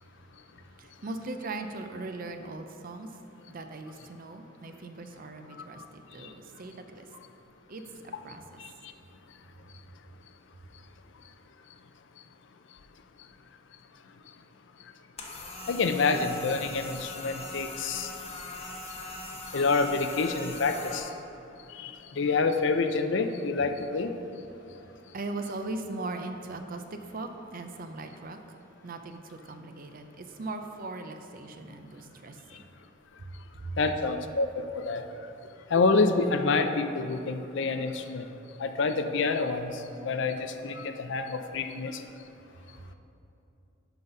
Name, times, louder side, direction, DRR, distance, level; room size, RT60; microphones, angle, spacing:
voice 1, 0.8-3.2 3.5-7.1 7.7-8.6 24.9-28.6 28.8-32.6 33.6-33.7 42.7-42.9, right 2 dB, 45° right, 6 dB, 0.5 m, -39 dB
sound 1, 15.2-21.0, left 2 dB, 30° left, 0.9 m, -41 dB
voice 2, 15.7-18.1 19.5-21.1 21.7-24.1 33.8-35.0 35.7-38.3 38.6-39.7 40.0-42.0, left 4 dB, 65° left, 7 dB, 0.5 m, -27 dB
11.5 x 4.0 x 5.4 m, 2.9 s
head